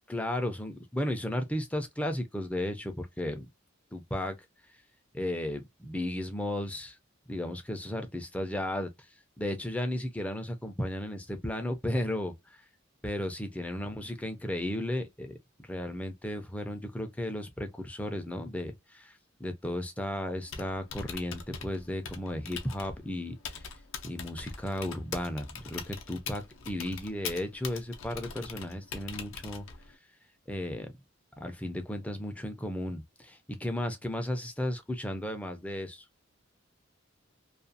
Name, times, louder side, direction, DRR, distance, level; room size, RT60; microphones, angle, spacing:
voice 1, 0.1-3.5 3.9-4.3 5.1-7.0 7.3-9.1 9.4-12.6 13.0-23.7 24.0-29.7 30.5-30.9 31.4-36.0, left 1 dB, 5° left, 0.4 m, -34 dB
Typing, 20.4-29.9, left 6 dB, 65° left, 0.5 m, -43 dB
2.4 x 2.3 x 2.5 m
head